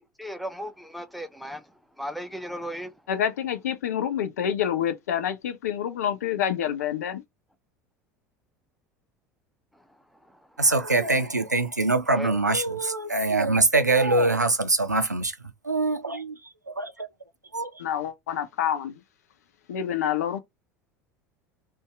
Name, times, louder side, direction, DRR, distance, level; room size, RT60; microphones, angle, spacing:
voice 1, 0.0-3.0 9.7-10.7 12.1-12.4, equal, ahead, 0.5 m, -37 dB
voice 2, 3.1-7.2 17.8-19.0 19.7-20.4, left 9 dB, 65° left, 0.5 m, -27 dB
voice 3, 10.6-15.3 15.6-16.3 16.7-17.1 17.5-17.7, right 2 dB, 90° right, 0.4 m, -23 dB
2.6 x 2.2 x 3.5 m
figure-of-eight pair, 70°, 9 cm